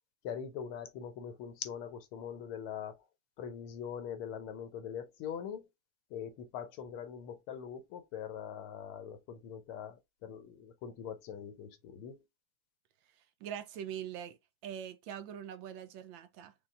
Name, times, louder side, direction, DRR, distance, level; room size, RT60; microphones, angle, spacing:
voice 1, 0.2-3.0 3.4-5.7 6.1-12.2, left 8 dB, 80° left, 1.7 m, -42 dB
voice 2, 13.4-14.4 14.6-16.5, right 9 dB, 70° right, 1.3 m, -42 dB
5.6 x 2.4 x 3.5 m
omnidirectional pair, 2.3 m